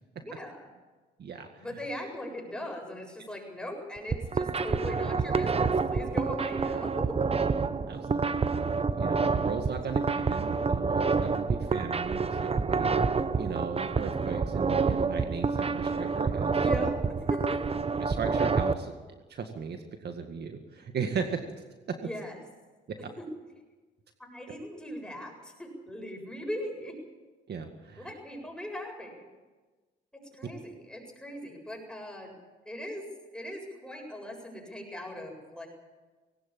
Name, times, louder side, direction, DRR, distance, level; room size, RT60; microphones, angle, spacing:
voice 1, 0.1-0.7 1.6-7.2 16.6-16.9 17.3-17.6 22.0-22.4 23.2-23.3 24.2-27.0 28.0-29.3 30.3-32.4 32.7-33.1 33.3-35.7, left 1 dB, 5° left, 1 dB, 7.5 m, -39 dB
voice 2, 1.2-1.6 7.6-8.4 8.9-10.0 10.3-16.6 18.0-21.4 21.9-22.0 22.9-23.0 27.5-28.1, right 6 dB, 55° right, 5 dB, 2.0 m, -37 dB
sound 1, 4.0-18.7, right 4 dB, 30° right, 1.0 m, -28 dB
20.0 x 18.0 x 8.8 m, 1.3 s
cardioid pair, 90°, 20 cm